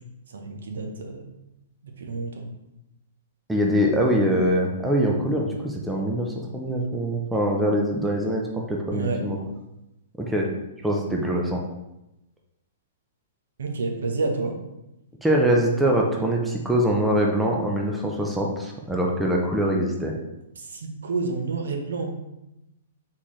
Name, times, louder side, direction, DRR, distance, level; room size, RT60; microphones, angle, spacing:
voice 1, 0.3-1.3 2.0-2.5 8.9-9.2 13.6-14.5 20.6-22.1, right 3 dB, 85° right, 3 dB, 0.9 m, -29 dB
voice 2, 3.5-9.4 10.2-10.5 10.8-11.6 15.2-20.1, equal, 5° right, -1 dB, 0.4 m, -23 dB
4.3 x 3.6 x 3.1 m, 0.91 s
hypercardioid pair, 180°, 0 cm